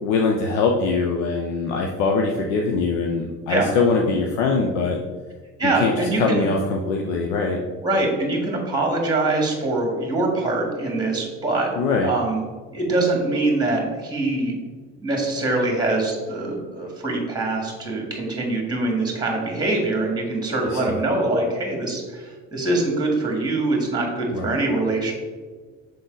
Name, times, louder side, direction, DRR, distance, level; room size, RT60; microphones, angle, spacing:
voice 1, 0.0-5.0 5.6-7.6 11.8-12.1 20.7-21.0 24.3-24.6, left 4 dB, 90° left, 1 dB, 0.7 m, -22 dB
voice 2, 5.6-6.5 7.8-11.7 12.0-12.4 12.7-14.5 15.0-25.1, right 2 dB, 10° right, 0 dB, 1.8 m, -23 dB
6.8 x 3.9 x 3.9 m, 1.4 s
supercardioid pair, 80°, 34 cm